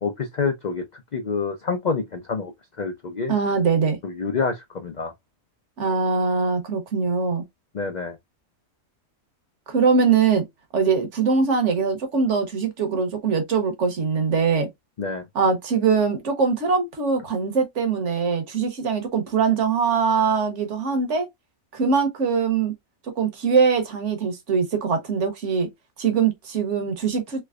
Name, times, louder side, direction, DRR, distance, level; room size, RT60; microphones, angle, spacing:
voice 1, 0.0-2.5 2.8-3.4 4.0-5.1 7.7-8.2 15.0-15.2, left 4 dB, 70° left, 0.4 m, -27 dB
voice 2, 3.3-4.0 5.8-7.4 9.7-10.5 10.7-14.7 15.3-21.3 21.7-22.7 23.2-25.7 26.0-27.4, right 5 dB, 60° right, 1.2 m, -22 dB
3.3 x 3.1 x 2.3 m
omnidirectional pair, 1.5 m